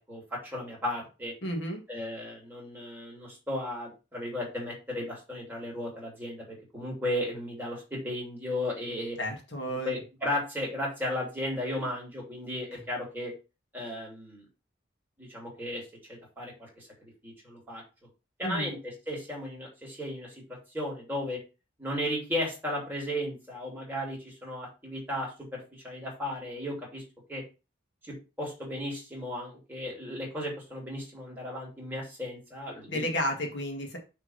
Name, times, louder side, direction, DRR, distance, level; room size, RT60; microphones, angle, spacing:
voice 1, 0.0-1.3 1.9-9.2 9.7-13.3 13.7-14.4 15.2-17.8 18.4-18.8 19.1-20.4 20.7-21.4 21.8-27.0 27.3-27.4 28.0-33.0, left 1 dB, 10° right, -3 dB, 3.0 m, -35 dB
voice 2, 1.4-1.8 9.2-10.0 18.4-18.7 32.9-34.0, equal, 65° left, 2 dB, 1.7 m, -32 dB
6.4 x 3.5 x 5.6 m, 0.30 s
head